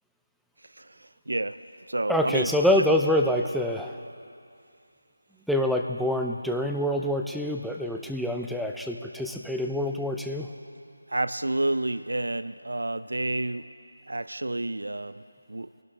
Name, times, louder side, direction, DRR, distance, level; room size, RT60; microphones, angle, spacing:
voice 1, 1.3-1.6 1.9-2.5 11.1-13.7 14.1-15.2 15.5-15.7, right 2 dB, 75° right, 13 dB, 0.3 m, -29 dB
voice 2, 2.1-4.0 5.5-10.5, left 1 dB, ahead, 2 dB, 0.4 m, -26 dB
21.5 x 11.5 x 3.2 m, 2.4 s
figure-of-eight pair, 165°, 0 cm